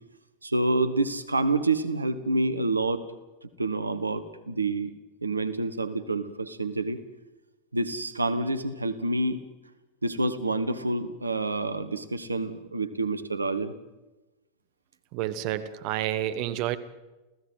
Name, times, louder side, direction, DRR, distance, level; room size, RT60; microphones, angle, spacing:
voice 1, 0.4-3.1 3.6-4.9 5.2-7.0 7.7-9.5 10.0-13.7, right 2 dB, 80° right, 11 dB, 1.3 m, -28 dB
voice 2, 15.1-16.8, right 12 dB, 45° right, 11 dB, 1.2 m, -29 dB
29.0 x 16.0 x 7.9 m, 1.1 s
figure-of-eight pair, 90°, 0 cm